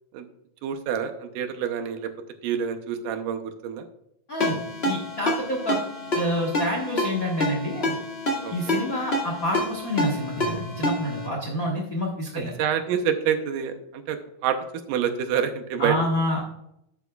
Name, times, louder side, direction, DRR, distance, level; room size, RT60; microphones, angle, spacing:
voice 1, 0.6-2.1 2.4-3.8 8.4-8.8 12.3-14.2 14.4-14.6 14.9-16.0, right 8 dB, 80° right, 8 dB, 2.3 m, -27 dB
Ringtone, 4.4-11.3, left 1 dB, 25° left, 1.6 m, -28 dB
voice 2, 4.8-5.8 6.1-7.9 8.5-12.5 15.8-16.5, equal, 65° left, -1 dB, 0.8 m, -28 dB
11.5 x 8.4 x 2.3 m, 0.80 s
omnidirectional pair, 3.8 m